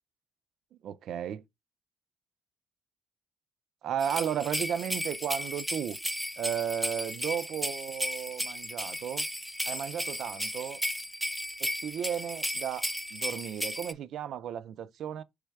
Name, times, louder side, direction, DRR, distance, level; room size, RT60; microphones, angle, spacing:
voice 1, 0.8-1.4 3.8-6.0 6.4-9.3 9.7-10.8 11.6-15.2, right 9 dB, 75° right, 0.3 m, -34 dB
sound 1, 4.0-13.9, equal, ahead, 0.4 m, -35 dB
3.3 x 3.1 x 4.6 m
cardioid pair, 90°, 0 cm